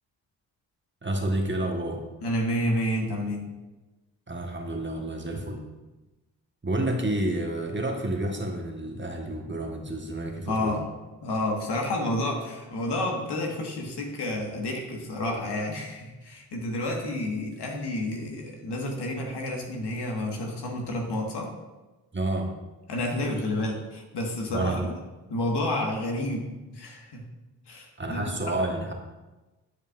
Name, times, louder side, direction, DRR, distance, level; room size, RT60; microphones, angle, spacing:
voice 1, 1.0-2.0 4.3-5.7 6.6-10.8 22.1-22.5 24.5-24.9 28.0-28.9, right 1 dB, 25° right, 2 dB, 1.2 m, -29 dB
voice 2, 2.2-3.5 10.5-10.9 11.2-21.5 22.9-24.9 25.3-27.2 27.7-28.3, left 1 dB, 65° left, 0 dB, 1.5 m, -30 dB
9.4 x 5.1 x 2.5 m, 1.1 s
supercardioid pair, 45°, 44 cm